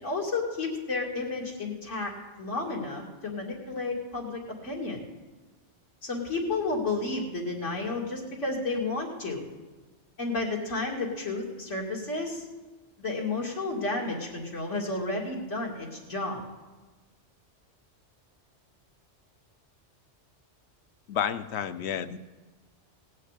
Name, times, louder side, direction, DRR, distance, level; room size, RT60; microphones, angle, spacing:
voice 1, 0.0-2.1 2.4-5.0 6.0-9.4 10.2-12.5 13.0-16.4, left 3 dB, 85° left, -2 dB, 3.0 m, -32 dB
voice 2, 21.1-22.2, left 8 dB, 70° left, 12 dB, 1.0 m, -30 dB
18.5 x 6.4 x 8.2 m, 1.2 s
omnidirectional pair, 1.2 m